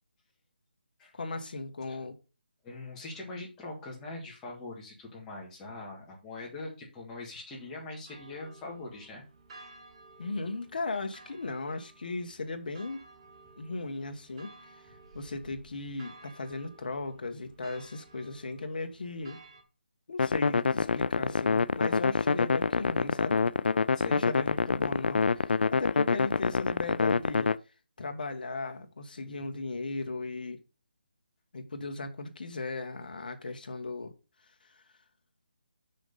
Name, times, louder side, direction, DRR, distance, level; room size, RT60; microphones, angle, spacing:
voice 1, 1.1-2.2 10.2-13.0 13.6-14.5 15.1-19.4 20.1-23.4 24.1-27.5 28.0-30.6 31.5-34.1, left 3 dB, 50° left, 1.4 m, -37 dB
voice 2, 2.6-9.2 23.9-24.3, left 2 dB, 10° left, 1.8 m, -42 dB
sound 1, 8.1-19.6, right 3 dB, 30° right, 1.3 m, -54 dB
sound 2, 20.2-27.5, left 4 dB, 70° left, 0.4 m, -26 dB
6.5 x 6.2 x 5.3 m
hypercardioid pair, 170°, 6 cm